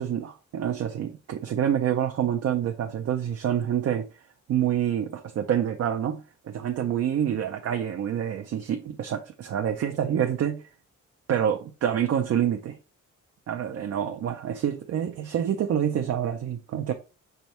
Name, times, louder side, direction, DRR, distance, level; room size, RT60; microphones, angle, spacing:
voice 1, 0.0-4.1 4.5-10.6 11.3-12.8 13.5-16.9, right 9 dB, 50° right, 0.5 m, -27 dB
5.3 x 3.4 x 2.8 m
wide cardioid pair, 145°, 31 cm